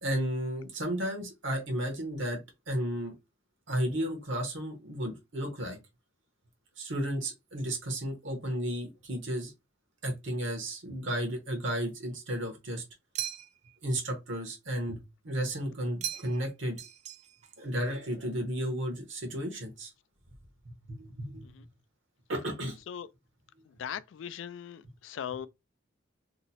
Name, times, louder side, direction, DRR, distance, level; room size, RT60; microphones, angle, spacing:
voice 1, 0.0-3.1 3.7-5.8 6.8-9.5 10.0-12.8 13.8-16.8 17.6-19.9 20.6-21.5 22.3-22.8, equal, 65° right, 0.9 m, -33 dB
sound 1, 13.2-13.8 16.0-16.5 16.8-17.5, right 12 dB, 35° right, 0.3 m, -38 dB
voice 2, 23.8-25.5, left 8 dB, 70° left, 0.3 m, -39 dB
2.8 x 2.0 x 4.0 m
head